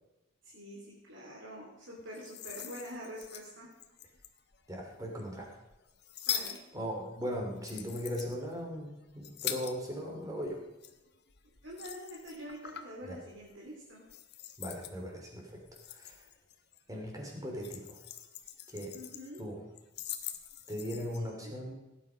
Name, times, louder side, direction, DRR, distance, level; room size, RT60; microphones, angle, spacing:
voice 1, 0.4-3.7 6.2-6.6 11.6-14.0 18.9-19.4 21.2-21.5, equal, 75° right, -4 dB, 3.2 m, -46 dB
sound 1, 2.0-4.6 5.2-10.2 10.5-13.0 13.4-13.7 14.1-15.0 15.5-16.8 17.1-19.4 19.8-21.2, left 9 dB, 55° left, 1.1 m, -43 dB
voice 2, 4.7-5.5 6.7-10.6 13.0-13.2 14.6-15.6 15.9-16.2 16.9-18.0 18.7-19.0 19.4-19.6 20.7-21.8, equal, 20° right, 0 dB, 3.2 m, -38 dB
17.5 x 9.0 x 5.2 m, 1.0 s
head